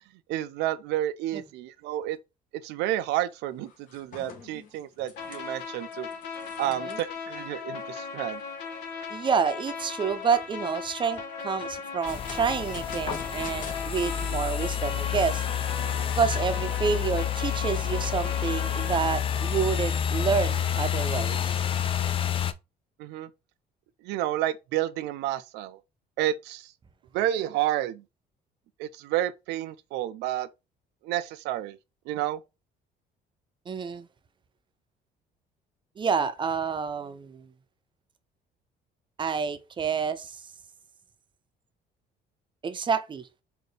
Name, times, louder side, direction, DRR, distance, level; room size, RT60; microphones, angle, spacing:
voice 1, 0.3-2.2 2.6-6.1 6.6-8.4 23.0-23.3 24.0-25.8 26.2-26.7 27.1-28.0 28.8-30.5 31.0-31.8 32.1-32.4, right 13 dB, 90° right, 0.4 m, -30 dB
sound 1, 3.1-3.3 3.6-7.4 7.8-7.9 8.4-8.5 8.9-9.4 9.9-10.6 11.6-13.8, left 5 dB, 50° left, 1.1 m, -47 dB
sound 2, 5.2-18.9, left 5 dB, 85° left, 0.8 m, -38 dB
voice 2, 9.1-15.4 16.2-21.5 33.7-34.1 36.0-37.5 39.2-40.4 42.6-43.3, right 6 dB, 30° right, 0.5 m, -28 dB
sound 3, 12.1-22.5, left 9 dB, 30° left, 0.3 m, -29 dB
4.2 x 2.6 x 3.2 m
cardioid pair, 110°, 17 cm